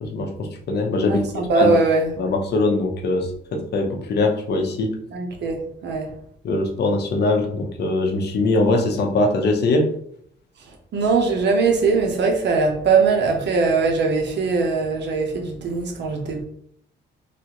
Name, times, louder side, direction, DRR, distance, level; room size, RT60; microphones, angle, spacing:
voice 1, 0.0-1.3 1.6-1.7 2.2-5.0 6.4-9.9, left 2 dB, 55° left, 2 dB, 0.7 m, -22 dB
voice 2, 1.1-2.1 5.1-6.1 10.6-16.4, right 4 dB, 60° right, 2 dB, 0.9 m, -21 dB
3.3 x 2.5 x 2.9 m, 0.67 s
cardioid pair, 90°, 20 cm